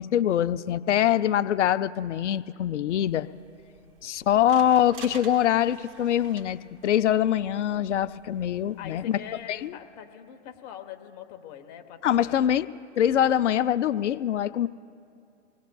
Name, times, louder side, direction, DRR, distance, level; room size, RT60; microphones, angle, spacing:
voice 1, 0.0-3.3 4.0-9.2 9.5-9.7 12.0-12.7 13.0-14.7, left 10 dB, 70° left, 13 dB, 0.5 m, -24 dB
sound 1, 2.9-9.7, right 4 dB, 70° right, 3.9 m, -49 dB
voice 2, 8.8-12.4, left 10 dB, 35° left, 5 dB, 1.0 m, -43 dB
24.5 x 20.0 x 2.3 m, 2.4 s
hypercardioid pair, 130°, 36 cm